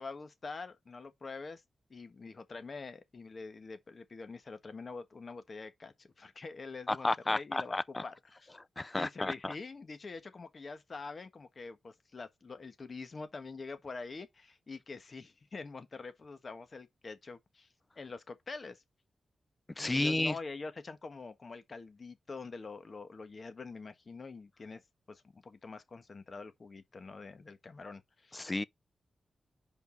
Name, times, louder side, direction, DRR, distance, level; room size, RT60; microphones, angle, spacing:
voice 1, 0.0-1.6 1.9-8.5 8.9-17.7 17.9-18.8 19.8-24.8 25.1-28.4, left 4 dB, 50° left, 1.4 m, -45 dB
voice 2, 6.9-8.0 8.8-9.5 19.8-20.3 28.3-28.6, left 2 dB, 25° left, 0.5 m, -32 dB
5.1 x 5.0 x 5.1 m
cardioid pair, 70°, 0 cm